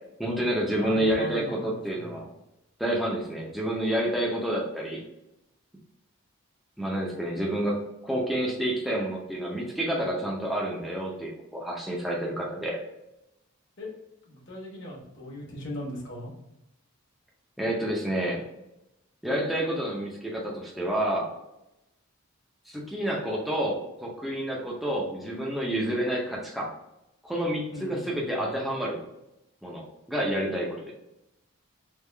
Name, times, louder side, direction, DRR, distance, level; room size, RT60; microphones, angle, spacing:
voice 1, 0.2-2.3 2.8-5.0 6.8-12.8 17.6-18.4 19.2-21.3 22.7-26.7 27.2-29.0 29.6-29.8 30.1-30.9, right 1 dB, ahead, -4 dB, 0.5 m, -29 dB
voice 2, 0.8-2.2 13.8-13.9 14.2-16.3 27.7-28.5, left 1 dB, 50° left, -3 dB, 1.1 m, -39 dB
3.5 x 2.4 x 3.3 m, 0.90 s
head